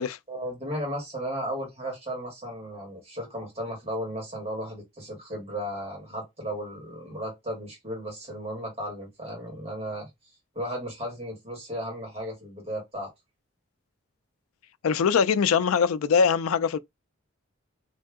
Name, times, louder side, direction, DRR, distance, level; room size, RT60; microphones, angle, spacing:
voice 1, 0.3-10.1 10.5-13.1, equal, 30° right, 2.1 m, -35 dB
voice 2, 14.8-16.8, left 6 dB, 85° left, 0.4 m, -22 dB
3.3 x 2.7 x 3.5 m
head